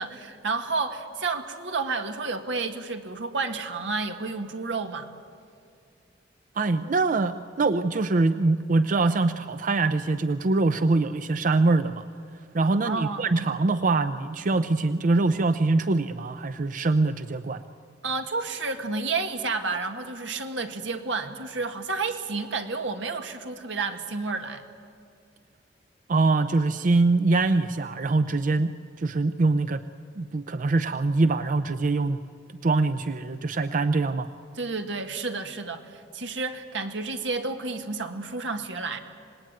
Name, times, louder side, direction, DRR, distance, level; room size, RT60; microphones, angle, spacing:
voice 1, 0.0-5.1 12.8-13.4 18.0-24.6 34.6-39.0, right 4 dB, 80° right, 6 dB, 1.7 m, -31 dB
voice 2, 6.6-12.1 12.5-17.6 26.1-29.8 30.2-32.2 32.6-34.3, right 3 dB, 45° right, 11 dB, 0.5 m, -23 dB
26.0 x 19.5 x 9.2 m, 2.3 s
head